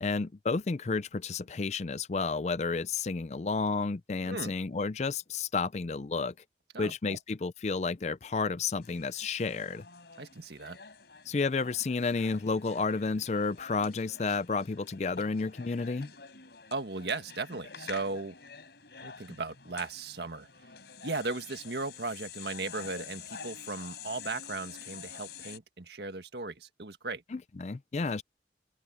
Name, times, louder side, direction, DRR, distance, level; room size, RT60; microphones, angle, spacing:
voice 1, 0.0-6.3 6.8-9.8 11.3-16.1 27.3-28.2, left 4 dB, 40° left, 0.4 m, -31 dB
voice 2, 4.2-4.6 6.7-7.2 10.2-10.8 16.7-18.4 19.0-20.5 21.0-27.2, right 3 dB, 70° right, 1.6 m, -37 dB
sound 1, 8.8-25.6, left 6 dB, 70° left, 4.2 m, -48 dB
head